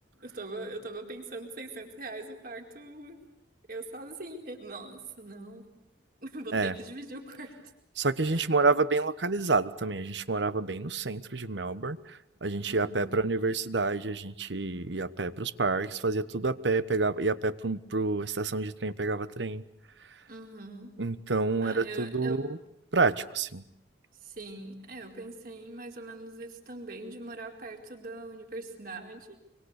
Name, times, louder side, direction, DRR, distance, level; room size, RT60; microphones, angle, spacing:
voice 1, 0.2-3.2 3.7-5.7 6.2-7.5 8.3-8.5 12.7-13.1 20.3-21.0 21.6-22.4 24.2-29.4, right 2 dB, 50° right, 2 dB, 4.6 m, -41 dB
voice 2, 8.0-19.6 21.0-22.6 22.9-23.6, right 3 dB, 80° right, 14 dB, 1.2 m, -28 dB
25.5 x 25.0 x 8.3 m, 0.78 s
head